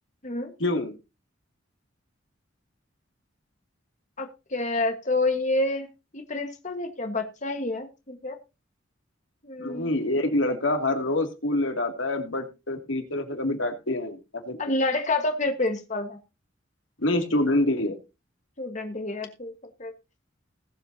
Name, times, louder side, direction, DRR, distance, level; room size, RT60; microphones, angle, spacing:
voice 1, 0.6-0.9 9.6-14.2 14.5-14.8 17.0-17.9, left 1 dB, 80° left, 5 dB, 2.6 m, -26 dB
voice 2, 4.2-5.9 6.1-8.4 9.4-9.9 14.6-16.2 18.6-19.5 19.8-19.9, left 2 dB, 40° left, 6 dB, 1.5 m, -28 dB
20.0 x 8.1 x 2.8 m, 0.27 s
head